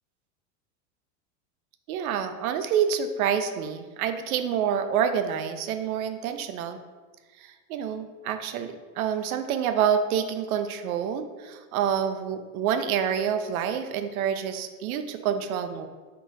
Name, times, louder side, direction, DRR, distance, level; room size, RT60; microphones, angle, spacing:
voice 1, 1.9-6.8 7.4-15.9, right 8 dB, 85° right, 8 dB, 0.5 m, -27 dB
3.7 x 2.4 x 4.0 m, 1.4 s
supercardioid pair, 125°, 42 cm